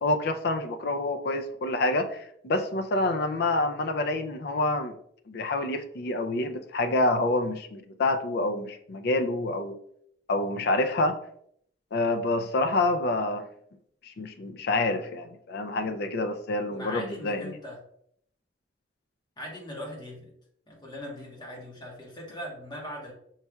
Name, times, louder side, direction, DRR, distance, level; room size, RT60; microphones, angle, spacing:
voice 1, 0.0-4.9 5.3-9.8 10.3-11.2 11.9-13.4 14.0-17.5, left 2 dB, 60° left, 8 dB, 0.4 m, -27 dB
voice 2, 16.7-17.8 19.4-20.3 20.7-23.1, left 1 dB, 25° left, -2 dB, 1.2 m, -40 dB
5.5 x 3.1 x 2.3 m, 0.68 s
head